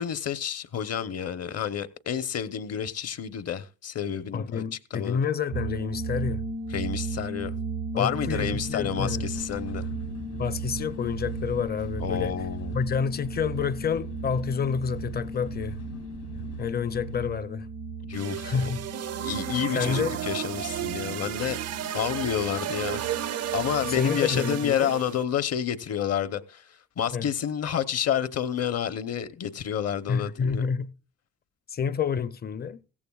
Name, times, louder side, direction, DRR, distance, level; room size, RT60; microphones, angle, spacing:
voice 1, 0.0-5.2 6.7-7.5 7.9-9.9 12.0-12.7 18.1-18.7 19.2-21.6 21.9-23.0 23.5-26.6 27.0-30.7, left 9 dB, 55° left, 0.8 m, -29 dB
voice 2, 4.3-6.4 7.9-9.3 10.4-12.4 12.7-15.8 16.6-17.7 18.4-18.8 19.7-20.2 23.8-24.9 27.1-27.3 30.1-30.9 31.7-32.8, left 6 dB, 30° left, 0.5 m, -29 dB
sound 1, 5.5-24.2, right 3 dB, 85° right, 1.2 m, -36 dB
sound 2, 8.5-17.3, left 6 dB, 80° left, 2.6 m, -43 dB
sound 3, 18.1-25.2, right 11 dB, 55° right, 0.5 m, -33 dB
15.5 x 14.5 x 2.3 m
cardioid pair, 90°, 30 cm